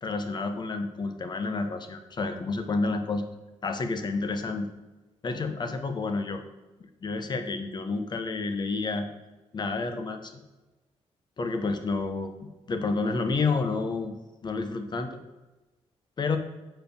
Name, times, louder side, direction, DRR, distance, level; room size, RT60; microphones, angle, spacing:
voice 1, 0.0-3.3 3.6-4.7 5.2-6.4 7.0-9.1 9.5-10.3 11.4-12.3 12.7-14.2 14.4-15.2 16.2-16.4, left 3 dB, 40° left, 6 dB, 1.1 m, -29 dB
8.0 x 4.8 x 7.0 m, 1.1 s
cardioid pair, 115°, 11 cm